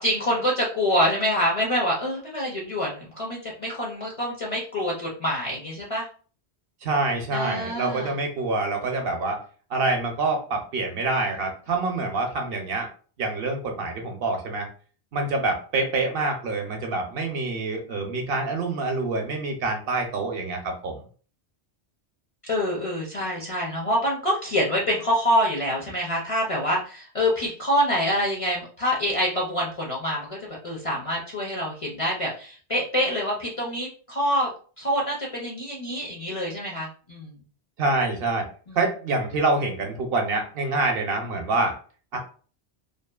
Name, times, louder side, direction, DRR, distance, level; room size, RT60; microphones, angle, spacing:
voice 1, 0.0-6.1 7.3-8.2 22.4-34.5 34.8-37.4 38.7-38.8, equal, 45° left, -3 dB, 0.5 m, -26 dB
voice 2, 6.8-9.4 9.7-12.9 13.2-14.7 15.1-21.0 37.8-38.5 38.8-41.7 42.1-42.2, right 3 dB, 65° right, 2 dB, 0.8 m, -26 dB
2.6 x 2.4 x 2.3 m, 0.41 s
omnidirectional pair, 1.1 m